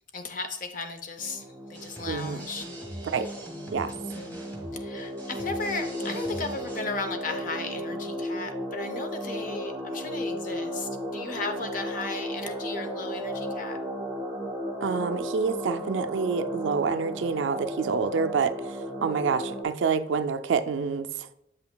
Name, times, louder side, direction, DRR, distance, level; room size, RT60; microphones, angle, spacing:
voice 1, 0.1-2.7 3.0-3.1 4.1-4.4 4.7-13.8, left 3 dB, 40° left, 0.6 m, -36 dB
sound 1, 1.2-19.6, equal, 5° right, 1.1 m, -35 dB
sound 2, 1.7-6.8, right 1 dB, 10° left, 1.6 m, -44 dB
voice 2, 2.1-2.4 3.0-3.3 3.7-3.9 14.8-18.5 19.0-21.3, right 5 dB, 70° right, 0.4 m, -27 dB
7.8 x 5.7 x 2.2 m
head